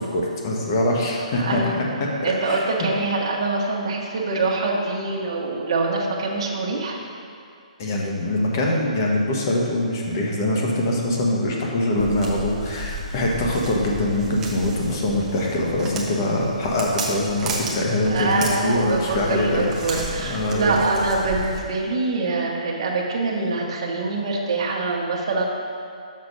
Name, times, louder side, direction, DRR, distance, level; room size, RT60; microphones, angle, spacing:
voice 1, 0.1-1.8 2.2-2.6 7.8-19.9 20.3-20.7, left 1 dB, 30° left, -2 dB, 1.2 m, -23 dB
voice 2, 1.3-1.7 2.2-7.0 18.0-25.5, right 3 dB, 45° right, -2 dB, 1.2 m, -24 dB
Walk footsteps, 12.0-21.6, right 2 dB, 10° right, 0.6 m, -33 dB
6.5 x 5.9 x 5.4 m, 2.4 s
hypercardioid pair, 170°, 4 cm